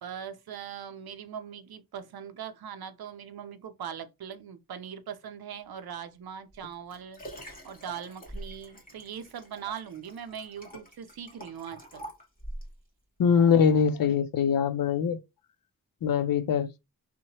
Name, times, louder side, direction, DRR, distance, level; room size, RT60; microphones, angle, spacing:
voice 1, 0.0-7.2 7.6-12.1, right 8 dB, 85° right, 0.6 m, -41 dB
Liquid, 6.5-12.8 13.4-13.5, equal, 25° left, 1.2 m, -45 dB
voice 2, 13.2-15.2 16.0-16.7, left 7 dB, 70° left, 0.5 m, -23 dB
2.8 x 2.1 x 2.8 m
wide cardioid pair, 85°, 36 cm